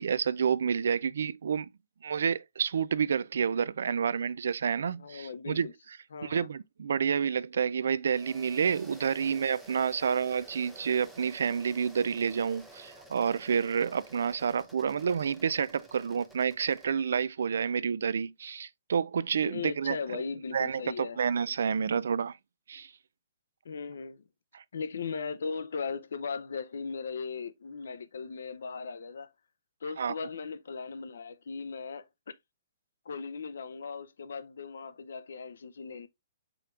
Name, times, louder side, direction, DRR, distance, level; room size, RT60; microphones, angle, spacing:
voice 1, 0.0-1.7 2.0-5.7 6.2-20.0 20.5-22.4 22.7-22.9 24.5-24.6 30.0-30.1, right 7 dB, 70° right, 0.3 m, -29 dB
voice 2, 5.0-5.7 6.1-6.5 19.4-21.2 23.6-24.2 24.7-29.3 29.8-32.3 33.1-36.1, left 5 dB, 70° left, 0.6 m, -38 dB
sound 1, 8.1-16.9, right 1 dB, ahead, 0.5 m, -52 dB
4.9 x 4.4 x 2.4 m
hypercardioid pair, 170°, 0 cm